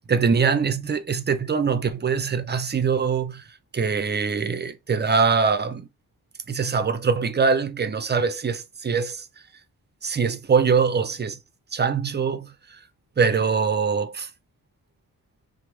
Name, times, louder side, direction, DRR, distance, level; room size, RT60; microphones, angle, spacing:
voice 1, 0.1-3.4 3.7-5.9 6.5-9.3 10.0-11.4 11.7-12.5 13.2-14.3, right 5 dB, 30° right, 0.4 m, -23 dB
3.0 x 2.0 x 3.0 m
cardioid pair, 95°, 37 cm